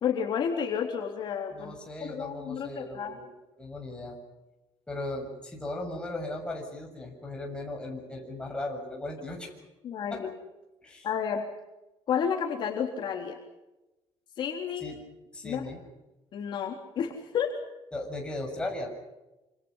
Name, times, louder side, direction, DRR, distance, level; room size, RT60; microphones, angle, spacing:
voice 1, 0.0-1.7 2.0-3.2 9.8-10.3 11.0-11.5 12.1-13.4 14.4-14.9 15.4-15.8 16.3-17.5, left 7 dB, 50° left, 1 dB, 3.6 m, -31 dB
voice 2, 1.5-3.3 3.6-4.2 4.9-9.5 10.1-10.2 10.8-11.1 14.8-15.0 15.3-15.8 17.9-18.9, left 2 dB, 10° left, 0 dB, 7.1 m, -37 dB
27.5 x 27.5 x 5.7 m, 1.0 s
cardioid pair, 160°, 10 cm